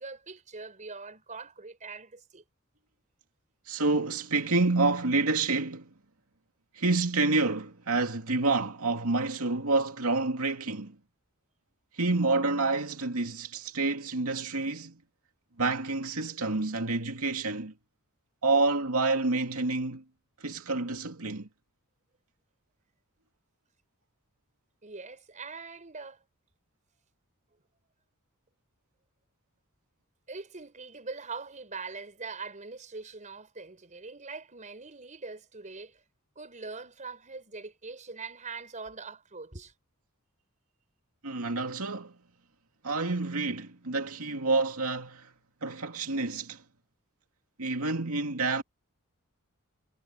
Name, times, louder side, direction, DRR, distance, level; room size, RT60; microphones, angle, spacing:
voice 1, 0.0-2.4 24.8-26.2 30.3-36.0 36.3-39.7, right 4 dB, 35° right, 5.0 m, -42 dB
voice 2, 3.7-5.9 6.7-11.0 11.9-15.0 15.6-17.7 18.4-20.0 20.4-21.5 41.2-42.1 42.8-45.3 45.6-46.6 47.6-48.6, right 3 dB, 80° right, 2.4 m, -28 dB
head